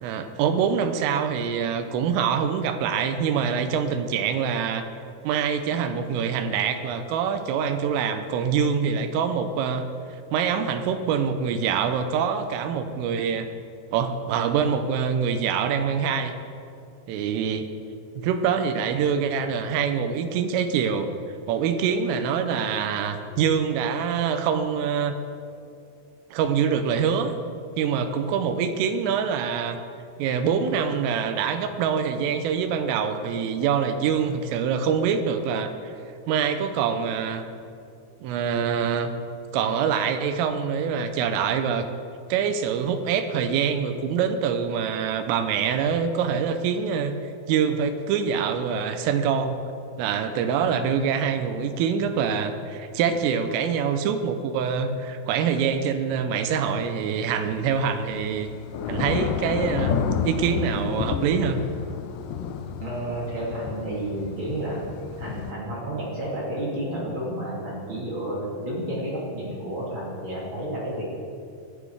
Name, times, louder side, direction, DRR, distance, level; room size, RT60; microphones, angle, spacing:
voice 1, 0.0-4.9 5.3-9.9 10.3-13.5 13.9-16.3 17.1-17.7 18.2-21.1 21.5-25.2 26.3-27.3 27.8-29.8 30.2-35.9 36.3-37.5 38.2-39.2 39.5-41.9 42.3-47.2 47.5-49.6 50.0-58.5 58.9-61.6, right 7 dB, 90° right, 8 dB, 3.5 m, -25 dB
Thunder / Rain, 57.3-65.5, left 7 dB, 80° left, 2.6 m, -31 dB
voice 2, 62.8-64.8 65.1-71.1, right 1 dB, 35° right, -5 dB, 2.4 m, -31 dB
17.5 x 11.5 x 4.8 m, 2.5 s
omnidirectional pair, 5.7 m